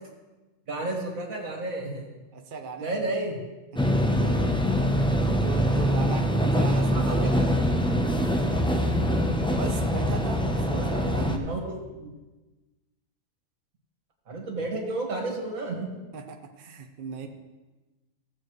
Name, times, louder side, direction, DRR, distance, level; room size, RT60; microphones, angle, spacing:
voice 1, 0.7-2.1 2.8-3.4 6.9-7.5 10.5-12.1 14.3-15.9, right 2 dB, 75° right, 0 dB, 2.3 m, -32 dB
voice 2, 2.3-3.2 3.7-4.0 5.0-7.3 9.5-11.3 16.1-17.3, right 4 dB, 45° right, 4 dB, 0.9 m, -38 dB
sound 1, 3.8-11.4, equal, 5° left, 0.4 m, -24 dB
16.5 x 7.5 x 3.2 m, 1.2 s
omnidirectional pair, 1.4 m